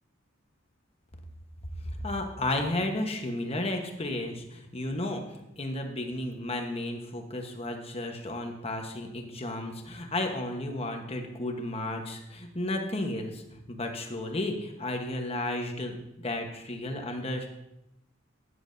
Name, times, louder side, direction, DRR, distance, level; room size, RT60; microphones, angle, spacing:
voice 1, 1.8-17.5, left 1 dB, 30° left, 3 dB, 1.2 m, -33 dB
13.5 x 9.7 x 2.7 m, 0.86 s
head